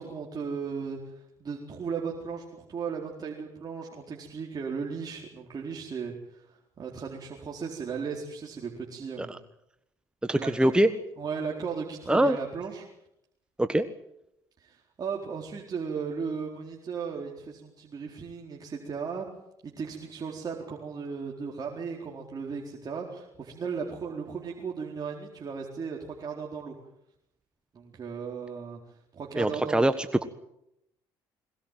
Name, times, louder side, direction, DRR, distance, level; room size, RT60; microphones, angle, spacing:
voice 1, 0.0-9.4 10.3-10.7 11.2-12.9 14.6-19.3 19.6-26.7 27.7-28.8 29.1-29.8, right 5 dB, 40° right, -1 dB, 4.4 m, -36 dB
voice 2, 10.2-10.9 12.1-12.4 13.6-13.9 29.4-30.2, right 1 dB, 10° right, 10 dB, 1.4 m, -23 dB
22.0 x 18.5 x 9.2 m, 0.81 s
supercardioid pair, 75°, 10 cm